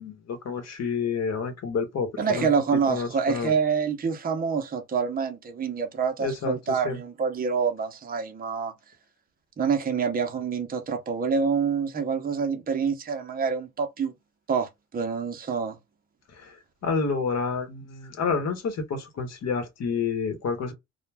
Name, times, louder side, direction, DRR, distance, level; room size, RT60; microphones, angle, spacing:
voice 1, 0.0-2.5 2.9-3.5 6.2-7.0 16.3-16.6 16.8-20.7, left 5 dB, 60° left, 1.0 m, -29 dB
voice 2, 2.2-8.7 9.6-14.1 14.5-15.8, right 6 dB, 30° right, 0.6 m, -27 dB
2.2 x 2.2 x 3.2 m
cardioid pair, 90°, 30 cm